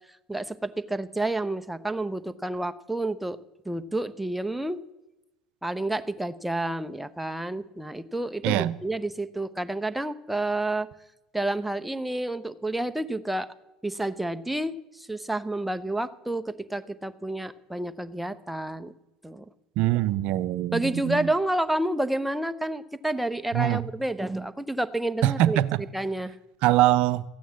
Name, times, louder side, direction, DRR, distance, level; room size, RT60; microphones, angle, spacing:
voice 1, 0.3-3.4 3.6-4.8 5.6-10.9 11.3-13.5 13.8-18.9 19.2-19.4 20.7-25.6 25.9-26.3, right 1 dB, 5° right, 0.9 m, -29 dB
voice 2, 8.4-8.7 19.8-21.3 23.5-23.8 25.2-25.8 26.6-27.2, right 14 dB, 60° right, 0.6 m, -23 dB
14.0 x 9.2 x 8.5 m
hypercardioid pair, 70°, 2 cm